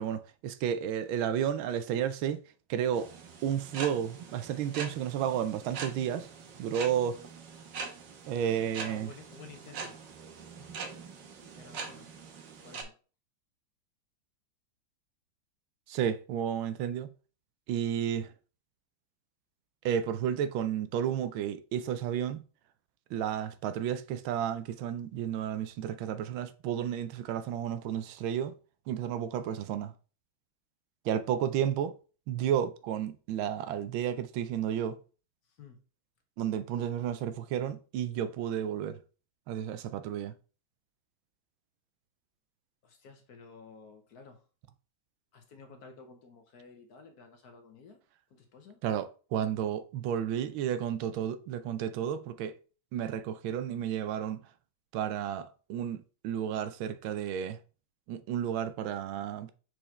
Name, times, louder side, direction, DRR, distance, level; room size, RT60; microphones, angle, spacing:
voice 1, 0.0-2.4 2.7-3.1 3.4-6.3 6.6-7.2 8.3-9.1 15.9-17.1 17.7-18.3 19.8-22.4 23.1-28.5 28.9-29.9 31.0-32.0 32.3-35.0 36.4-39.0 39.5-40.3 48.8-52.5 52.9-54.4 54.9-57.6 58.1-59.5, right 9 dB, 85° right, 1.4 m, -32 dB
sound 1, 2.9-12.8, right 5 dB, 65° right, 1.6 m, -43 dB
voice 2, 8.8-10.0 11.5-12.1 12.6-13.0 35.4-35.8 42.8-44.5 45.3-48.0 48.3-48.8, left 4 dB, 60° left, 1.2 m, -52 dB
6.2 x 4.9 x 3.2 m
omnidirectional pair, 2.2 m